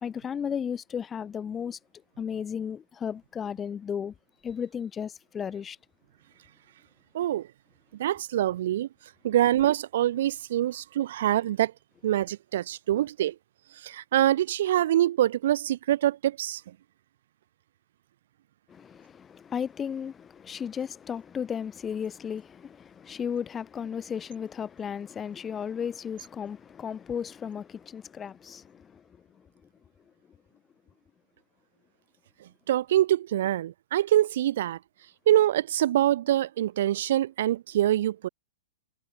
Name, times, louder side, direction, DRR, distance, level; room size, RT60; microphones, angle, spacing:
voice 1, 0.0-1.8 2.2-4.1 4.4-5.8 18.7-29.0, left 7 dB, 20° left, 1.7 m, -34 dB
voice 2, 7.1-7.5 7.9-8.9 9.2-11.7 12.0-13.4 13.8-16.6 32.7-34.8 35.3-38.3, right 12 dB, 60° right, 0.4 m, -25 dB
hypercardioid pair, 115°, 0 cm